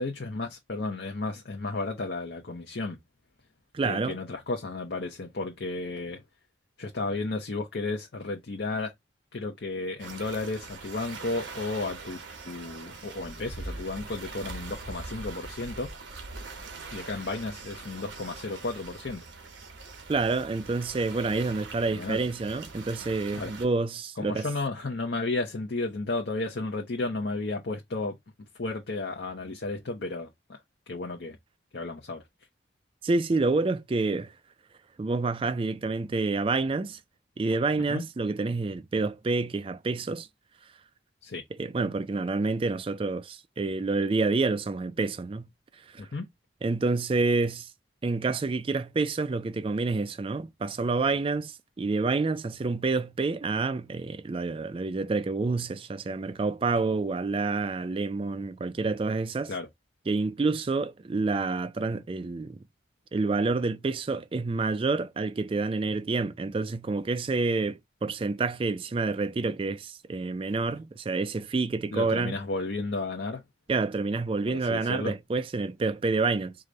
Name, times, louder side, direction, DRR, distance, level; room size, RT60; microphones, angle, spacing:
voice 1, 0.0-3.0 3.8-6.2 6.8-8.9 9.3-12.2 12.4-15.9 16.9-19.2 21.8-22.2 23.3-23.5 24.2-28.2 28.5-31.4 31.7-32.2 37.9-38.0 41.2-41.4 46.0-46.3 59.5-59.7 71.9-73.4 74.4-75.1, left 3 dB, 60° left, 0.7 m, -33 dB
voice 2, 3.7-4.2 20.1-24.5 33.0-34.3 35.0-37.0 37.4-40.3 41.6-45.5 45.9-46.0 46.6-47.7 48.0-59.5 60.1-62.6 63.1-72.3 73.7-76.6, right 3 dB, 30° right, 0.3 m, -28 dB
sound 1, 10.0-23.7, right 3 dB, 75° right, 1.1 m, -42 dB
4.8 x 2.2 x 3.7 m
head